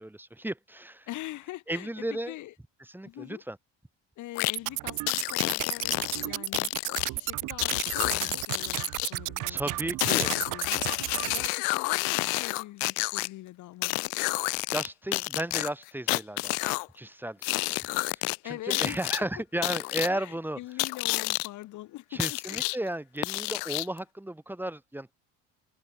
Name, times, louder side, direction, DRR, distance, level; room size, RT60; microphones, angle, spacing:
voice 1, 0.0-1.1 1.7-2.3 2.9-3.6 9.5-10.3 14.7-17.8 18.1-20.6 22.1-25.1, right 1 dB, 5° right, 1.6 m, -34 dB
voice 2, 1.1-2.5 3.0-3.4 4.2-6.7 7.1-9.9 10.2-14.1 18.4-19.2 20.1-22.2 22.5-22.6, left 16 dB, 60° left, 1.1 m, -43 dB
sound 1, 4.4-4.6 5.1-7.1 7.6-9.1 10.0-13.3 13.8-14.9 15.1-16.9 17.4-18.4 18.7-19.2 19.6-20.1 20.8-21.5 22.2-22.8 23.2-24.0, left 37 dB, 85° left, 0.8 m, -29 dB
sound 2, 4.6-11.5, right 20 dB, 65° right, 0.9 m, -33 dB
open air
supercardioid pair, 100°, 34 cm